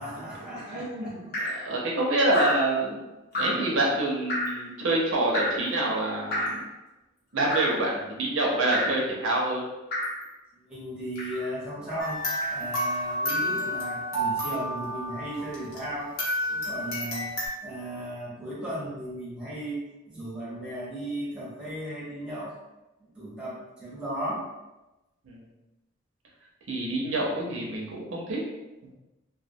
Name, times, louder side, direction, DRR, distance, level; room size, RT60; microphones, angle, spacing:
voice 1, 0.0-1.3 10.5-12.2 12.5-16.1 16.5-17.3 17.6-22.6 23.0-24.5, right 1 dB, 5° right, -8 dB, 0.7 m, -36 dB
voice 2, 0.7-3.0 3.3-6.6 7.3-9.6 25.3-25.4 26.7-28.4, right 2 dB, 70° right, -3 dB, 0.5 m, -27 dB
Drip, 1.3-1.7 2.3-2.7 3.3-3.7 4.3-4.6 5.3-5.7 6.3-6.7 7.5-7.9 8.7-9.0 9.9-10.2 11.2-11.5 12.4-12.6, left 1 dB, 45° left, 0.7 m, -30 dB
sound 1, 12.0-15.9 16.2-17.5, equal, 80° left, 0.8 m, -30 dB
2.2 x 2.1 x 2.6 m, 1.0 s
head